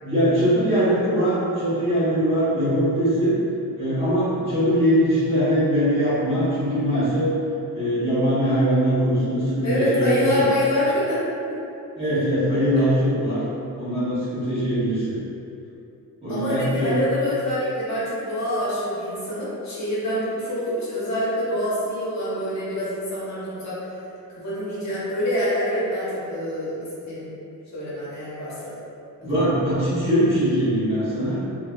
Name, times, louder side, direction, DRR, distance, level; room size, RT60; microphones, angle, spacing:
voice 1, 0.0-3.3 3.8-7.3 7.7-10.4 11.9-13.4 13.8-15.2 16.2-16.9 29.2-31.4, equal, 15° right, -13 dB, 1.2 m, -21 dB
voice 2, 9.6-11.2 11.5-11.6 12.7-12.8 16.3-23.8 24.3-27.3 27.7-28.8 29.2-29.3, left 1 dB, 50° left, -9 dB, 1.1 m, -26 dB
3.1 x 2.6 x 2.4 m, 2.8 s
wide cardioid pair, 160°, 35 cm